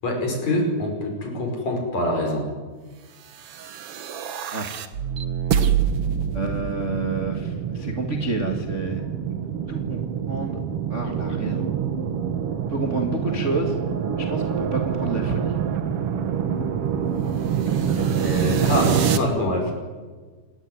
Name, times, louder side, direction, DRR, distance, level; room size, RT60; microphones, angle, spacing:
voice 1, 0.0-2.5 18.0-19.7, left 1 dB, 50° left, 2 dB, 6.9 m, -25 dB
sound 1, 3.4-19.2, right 8 dB, 55° right, 1.9 m, -26 dB
voice 2, 6.3-9.0 9.7-10.0 10.3-10.6 10.9-11.7 12.7-13.8 14.2-15.6 17.6-17.8, right 3 dB, 25° right, 3 dB, 1.8 m, -29 dB
27.5 x 20.0 x 9.6 m, 1.4 s
omnidirectional pair, 4.0 m